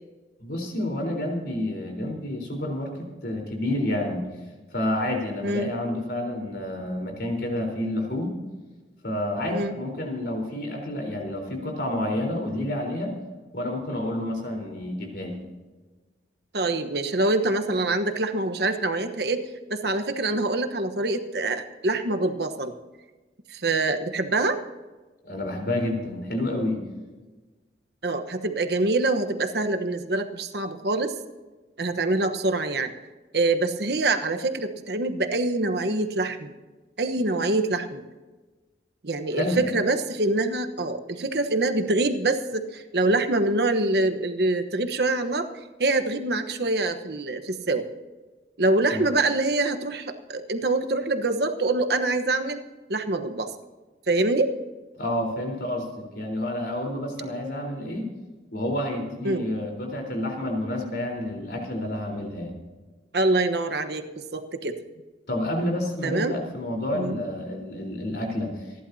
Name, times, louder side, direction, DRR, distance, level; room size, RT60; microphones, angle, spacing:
voice 1, 0.4-4.3 4.7-8.3 9.0-13.1 13.5-15.5 25.2-26.9 39.3-39.6 48.9-49.0 55.0-58.1 58.5-62.6 65.3-68.7, left 1 dB, 60° left, 2 dB, 4.1 m, -29 dB
voice 2, 5.4-5.7 9.5-9.8 16.5-19.4 19.7-22.7 23.5-24.6 28.0-31.1 31.8-32.9 33.3-36.5 37.0-38.0 39.0-45.5 45.8-47.8 48.6-52.6 52.9-53.5 54.1-54.5 59.2-59.5 63.1-64.8 66.0-66.3 66.9-67.1, right 2 dB, 60° right, 8 dB, 1.1 m, -25 dB
27.5 x 11.5 x 2.8 m, 1.3 s
head